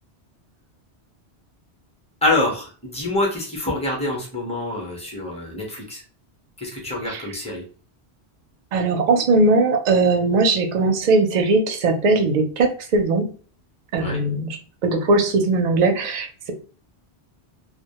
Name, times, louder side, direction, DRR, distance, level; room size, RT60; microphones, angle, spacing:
voice 1, 2.2-6.0 6.6-7.6 14.0-14.2, left 2 dB, 5° left, -2 dB, 0.6 m, -26 dB
voice 2, 8.7-13.3 13.9-14.6 14.8-16.5, right 3 dB, 55° right, 5 dB, 0.5 m, -19 dB
2.1 x 2.0 x 2.8 m, 0.39 s
omnidirectional pair, 1.1 m